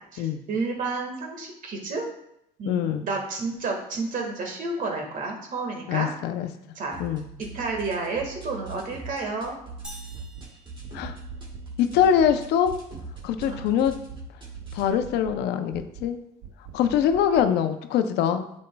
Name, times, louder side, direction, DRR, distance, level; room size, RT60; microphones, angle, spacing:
voice 1, 0.1-2.0 2.6-6.1 6.7-7.0 7.5-9.6 13.5-13.6, right 3 dB, 55° right, 2 dB, 1.6 m, -31 dB
voice 2, 2.7-3.0 5.9-6.5 7.0-7.2 10.9-11.1 11.8-12.7 13.2-13.9 14.7-16.2 16.7-18.5, left 9 dB, 85° left, 8 dB, 0.6 m, -23 dB
sound 1, 6.9-14.9, right 3 dB, 30° right, 2.3 m, -42 dB
sound 2, 9.8-11.8, equal, 5° right, 1.3 m, -47 dB
sound 3, 10.1-10.5 10.8-11.7 12.0-12.4 12.7-13.5 13.8-14.2 14.5-15.4 15.7-16.1 16.4-17.5, right 7 dB, 70° right, 0.7 m, -44 dB
9.3 x 5.3 x 2.3 m, 0.77 s
cardioid pair, 110°, 17 cm